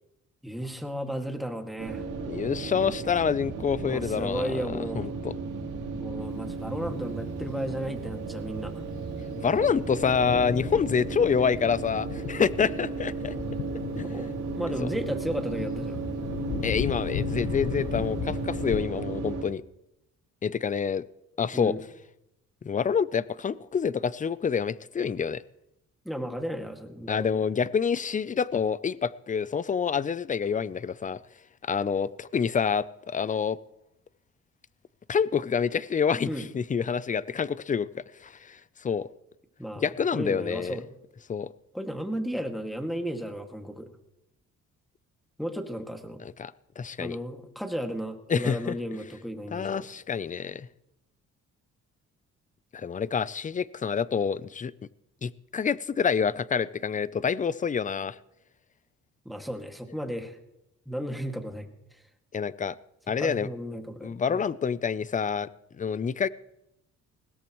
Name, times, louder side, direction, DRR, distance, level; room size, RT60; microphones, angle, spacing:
voice 1, 0.4-2.0 3.8-5.1 6.0-8.8 14.0-16.0 21.5-21.8 26.0-27.4 36.2-36.5 39.6-41.0 41.7-43.9 45.4-46.2 47.0-49.9 59.3-60.4 60.9-61.7 63.2-64.5, equal, ahead, 4 dB, 2.1 m, -34 dB
sound 1, 1.8-19.4, right 4 dB, 85° right, 2.8 m, -35 dB
voice 2, 2.3-4.7 4.9-5.3 9.4-13.3 14.0-14.1 14.8-14.9 16.6-19.6 20.4-21.0 21.4-21.8 22.6-25.4 27.1-31.2 31.6-33.6 35.1-39.1 39.8-40.8 41.3-41.5 46.2-47.2 48.3-48.8 49.5-50.7 52.7-54.7 55.2-58.2 62.3-62.8 63.1-63.5 64.0-65.5 65.8-66.3, left 6 dB, 25° left, 19 dB, 0.5 m, -27 dB
Thunder, 9.1-18.8, left 8 dB, 65° left, 1.1 m, -37 dB
20.5 x 17.0 x 3.1 m, 0.85 s
cardioid pair, 90°, 30 cm